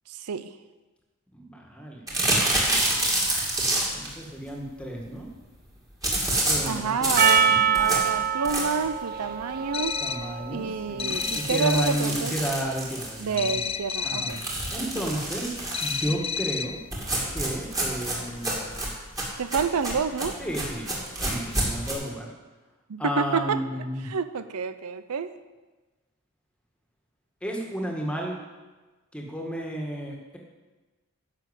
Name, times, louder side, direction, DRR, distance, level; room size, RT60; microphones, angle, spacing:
voice 1, 0.1-0.5 6.7-10.0 10.5-12.3 13.2-14.4 19.4-20.4 22.9-23.6 24.1-25.3, right 5 dB, 85° right, 12 dB, 0.6 m, -28 dB
voice 2, 1.3-2.1 2.4-2.9 3.9-5.3 6.4-7.2 10.0-13.6 14.0-14.4 14.7-16.8 17.3-18.9 20.4-22.3 23.0-24.1 27.4-28.4 29.1-30.4, equal, 5° left, 0 dB, 1.8 m, -32 dB
sound 1, 2.1-4.1 6.0-8.9 9.4-9.5 9.8-9.9 10.2-10.3 11.0-13.5 14.3-16.1 16.9-21.9, right 1 dB, 15° right, 2.4 m, -28 dB
Percussion, 7.2-11.7, right 7 dB, 45° right, 0.6 m, -26 dB
sound 2, 9.7-10.4 11.0-12.1 13.4-14.5 15.7-16.9, left 7 dB, 25° left, 0.3 m, -31 dB
10.5 x 6.7 x 8.2 m, 1.2 s
head